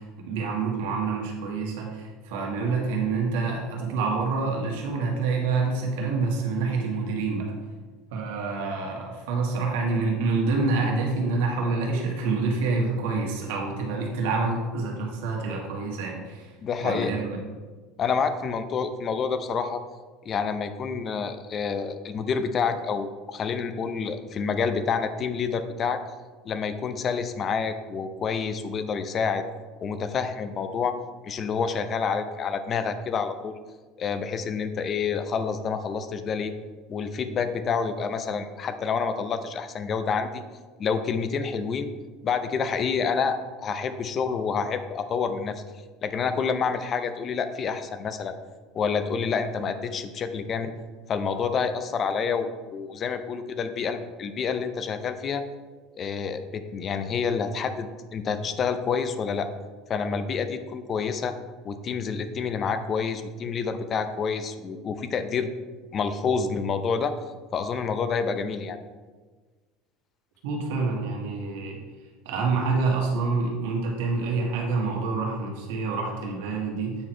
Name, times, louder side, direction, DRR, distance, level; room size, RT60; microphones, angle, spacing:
voice 1, 0.0-7.5 8.1-16.5 16.8-17.4 70.4-71.8 72.3-77.0, right 4 dB, 90° right, 0 dB, 1.7 m, -27 dB
voice 2, 16.6-17.1 18.0-19.8 20.3-26.0 26.4-29.4 29.8-31.0 31.2-33.6 34.0-36.5 36.9-40.4 40.8-41.9 42.2-43.4 43.6-45.6 46.0-48.3 48.7-50.7 51.1-55.4 56.0-59.5 59.9-61.4 61.6-65.5 65.9-67.2 67.5-68.8, left 5 dB, 30° left, 10 dB, 0.5 m, -28 dB
8.6 x 4.6 x 4.4 m, 1.4 s
cardioid pair, 150°, 0 cm